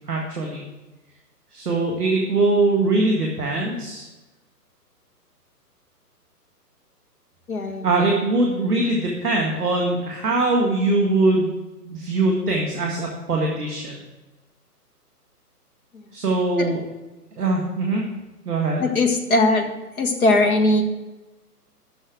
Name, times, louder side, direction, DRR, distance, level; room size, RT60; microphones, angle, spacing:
voice 1, 0.1-0.6 1.5-4.0 7.8-11.5 11.8-14.0 16.1-16.8 17.4-18.0 18.4-18.9, right 2 dB, ahead, -20 dB, 0.4 m, -22 dB
voice 2, 7.5-7.9 15.9-16.0 16.6-16.7 18.8-19.7 20.0-20.8, left 2 dB, 60° left, 4 dB, 1.8 m, -19 dB
8.0 x 6.4 x 8.0 m, 1.1 s
figure-of-eight pair, 135°, 48 cm